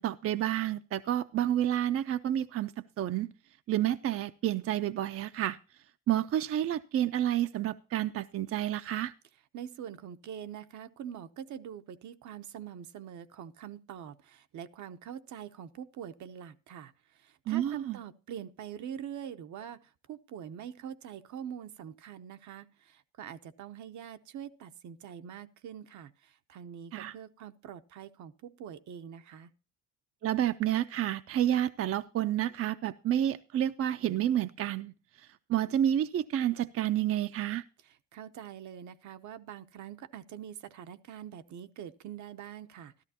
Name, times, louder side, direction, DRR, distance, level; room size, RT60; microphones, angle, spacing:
voice 1, 0.0-3.3 3.7-5.6 6.1-9.1 17.5-18.0 26.9-27.1 30.2-37.6, right 11 dB, 50° right, 11 dB, 0.4 m, -30 dB
voice 2, 9.5-29.5 38.1-43.0, right 9 dB, 70° right, 9 dB, 0.8 m, -44 dB
13.5 x 12.5 x 2.8 m, 0.34 s
cardioid pair, 90°, 30 cm